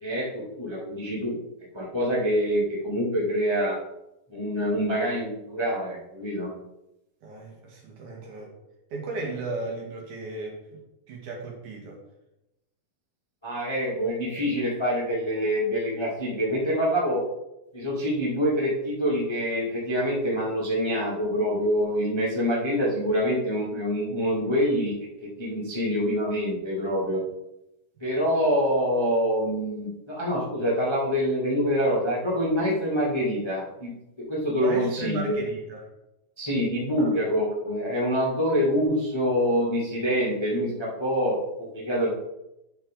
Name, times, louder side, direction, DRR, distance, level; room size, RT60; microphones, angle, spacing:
voice 1, 0.0-1.3 1.7-3.8 4.3-6.5 13.4-17.2 17.7-24.9 25.2-27.2 28.0-35.4 36.4-42.1, equal, 15° left, -6 dB, 1.1 m, -26 dB
voice 2, 7.2-8.5 8.9-10.8 11.1-12.0 34.6-35.8 37.0-37.2, right 3 dB, 60° right, 0 dB, 2.7 m, -35 dB
10.0 x 6.2 x 3.7 m, 0.89 s
omnidirectional pair, 4.3 m